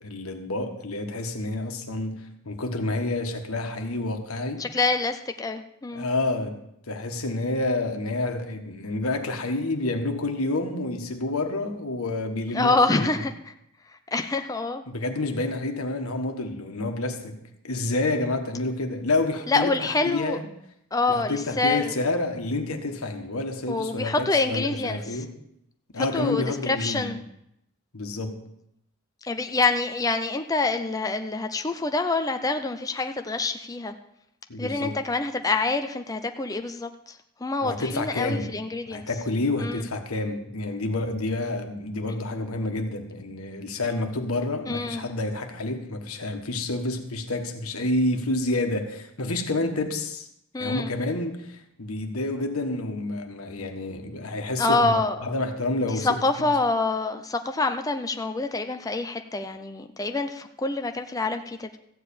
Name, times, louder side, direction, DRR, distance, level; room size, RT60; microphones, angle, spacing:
voice 1, 0.0-4.7 5.9-6.6 6.9-13.2 14.9-17.4 17.6-20.4 21.1-25.3 25.9-27.1 27.9-28.4 34.5-34.9 37.6-38.5 38.9-50.3 50.6-56.5, left 2 dB, 90° left, 5 dB, 1.4 m, -29 dB
voice 2, 4.6-6.1 12.5-13.5 14.1-14.8 19.5-20.4 20.9-21.9 23.7-25.2 26.0-27.2 29.2-33.9 34.6-39.1 39.6-39.8 44.7-45.1 50.5-50.9 54.6-55.1 55.9-61.8, left 3 dB, 15° left, 6 dB, 0.5 m, -26 dB
14.0 x 4.8 x 8.5 m, 0.77 s
head